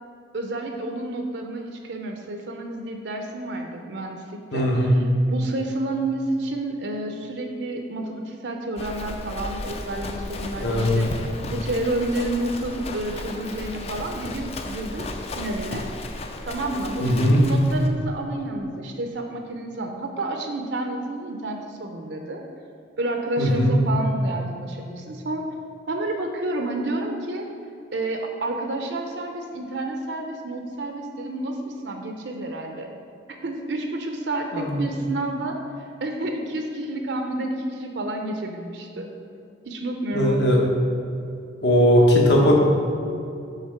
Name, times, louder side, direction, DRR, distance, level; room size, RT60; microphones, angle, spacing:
voice 1, 0.3-5.0 5.3-15.9 16.4-22.4 23.0-25.5 25.9-27.5 27.9-32.9 33.3-39.1 39.6-40.6, right 2 dB, 65° right, 3 dB, 0.5 m, -30 dB
voice 2, 4.5-5.0 10.6-10.9 17.0-17.4 23.4-23.8 34.5-34.8 40.1-40.6 41.6-42.5, equal, 65° left, -2 dB, 1.1 m, -18 dB
Livestock farm animals working animals, 8.8-17.9, left 2 dB, 35° left, 0.4 m, -34 dB
5.7 x 3.9 x 5.7 m, 2.6 s
head